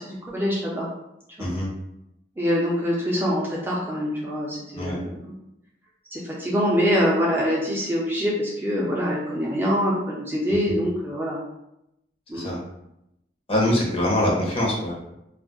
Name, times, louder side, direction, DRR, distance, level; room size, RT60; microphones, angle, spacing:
voice 1, 0.1-0.9 1.4-1.5 2.4-5.3 6.1-11.4 12.3-12.5, equal, 10° right, -6 dB, 0.4 m, -24 dB
voice 2, 13.5-14.9, left 1 dB, 30° left, -3 dB, 0.7 m, -23 dB
2.3 x 2.0 x 3.8 m, 0.85 s
head